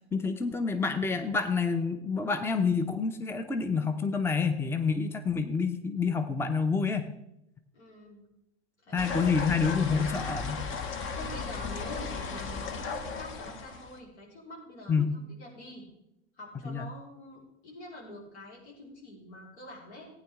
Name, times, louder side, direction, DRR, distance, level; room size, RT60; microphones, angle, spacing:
voice 1, 0.1-7.1 8.9-10.6 14.9-15.1 16.6-16.8, left 5 dB, 5° left, 9 dB, 0.7 m, -28 dB
voice 2, 7.7-8.2 8.8-9.1 11.1-15.8 16.3-20.1, left 1 dB, 75° left, -4 dB, 4.5 m, -46 dB
sound 1, 9.0-14.0, left 4 dB, 35° left, 1.2 m, -35 dB
15.5 x 9.5 x 3.6 m, 0.84 s
hypercardioid pair, 85°, 34 cm